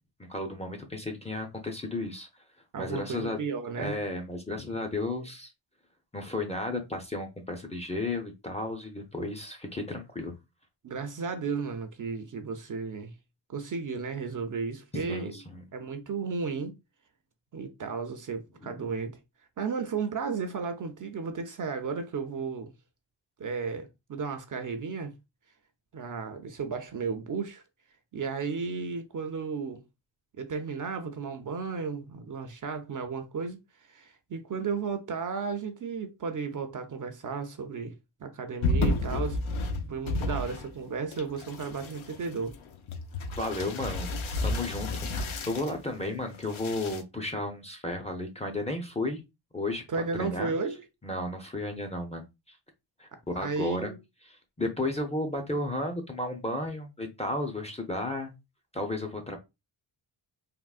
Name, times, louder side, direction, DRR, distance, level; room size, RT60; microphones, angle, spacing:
voice 1, 0.2-2.3 2.8-3.4 3.8-5.5 6.1-10.3 14.9-15.6 18.6-18.8 43.4-44.1 44.4-49.2 49.5-49.8 50.2-50.5 51.0-52.6 53.0-53.9 54.3-58.3 58.7-59.4, left 2 dB, 15° left, 0.5 m, -33 dB
voice 2, 2.7-4.0 10.8-13.1 13.5-15.3 15.7-16.8 17.5-19.2 19.6-22.7 23.4-25.1 25.9-27.6 28.1-29.8 30.4-33.6 33.9-37.9 38.2-39.4 39.8-42.5 49.9-50.8 53.1-54.0, right 5 dB, 45° right, 0.4 m, -34 dB
sound 1, 38.6-40.8 41.1-45.8 46.3-47.0, left 2 dB, 85° left, 0.6 m, -32 dB
3.6 x 2.0 x 2.3 m
wide cardioid pair, 110°, 47 cm